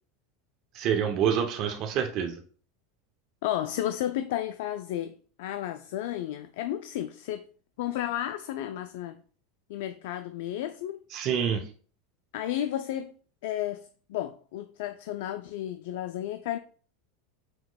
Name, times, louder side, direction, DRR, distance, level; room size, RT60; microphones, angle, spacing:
voice 1, 0.7-2.4 11.1-11.6, right 8 dB, 50° right, 0.6 m, -27 dB
voice 2, 3.4-7.5 7.8-9.2 9.7-11.0 12.3-13.1 13.4-16.6, left 12 dB, 70° left, 0.3 m, -33 dB
6.2 x 2.9 x 2.2 m
hypercardioid pair, 105°, 0 cm